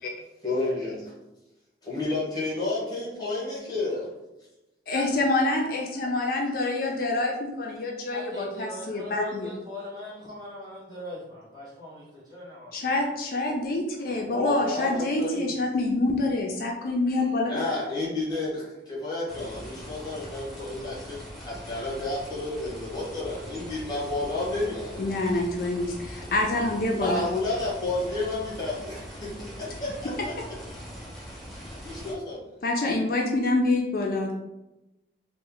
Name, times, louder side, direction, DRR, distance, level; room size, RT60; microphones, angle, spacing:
voice 1, 0.4-1.0 1.8-4.1 14.1-15.6 17.5-25.1 27.0-30.3 31.5-32.5, left 2 dB, 25° left, -6 dB, 1.1 m, -31 dB
voice 2, 4.9-9.5 12.7-17.6 25.0-27.3 32.6-34.3, left 2 dB, 55° left, 0 dB, 0.4 m, -26 dB
voice 3, 8.1-13.1, left 1 dB, 25° right, -8 dB, 1.3 m, -40 dB
sound 1, 19.3-32.1, equal, ahead, 0.6 m, -42 dB
3.1 x 2.1 x 3.7 m, 0.96 s
head